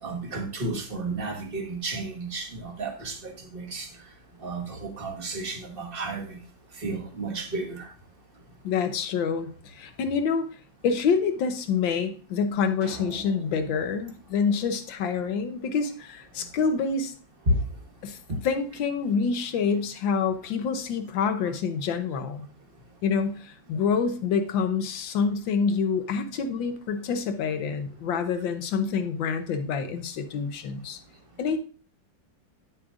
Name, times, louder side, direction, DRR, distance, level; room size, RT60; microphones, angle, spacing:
voice 1, 0.0-3.9 4.4-6.4 6.8-7.9 17.5-17.6, right 1 dB, 30° right, 1.3 m, -31 dB
voice 2, 8.6-10.5 10.8-17.1 18.0-18.2 18.4-22.5 23.0-31.0 31.4-31.6, left 5 dB, 80° left, 1.6 m, -27 dB
sound 1, 12.8-15.3, right 4 dB, 90° right, 2.2 m, -46 dB
9.4 x 7.5 x 2.5 m
omnidirectional pair, 2.1 m